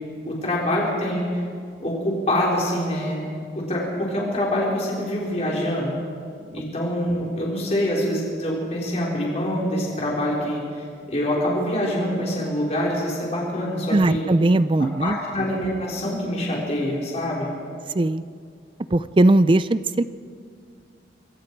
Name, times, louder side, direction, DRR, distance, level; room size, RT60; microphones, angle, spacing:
voice 1, 0.2-1.4 1.8-3.3 3.7-5.9 6.5-14.3 15.0-17.5, left 1 dB, 40° left, -4 dB, 4.0 m, -25 dB
voice 2, 13.9-15.2 17.9-18.2 18.9-20.0, right 2 dB, 30° right, 14 dB, 0.4 m, -19 dB
26.5 x 22.5 x 4.6 m, 2.2 s
head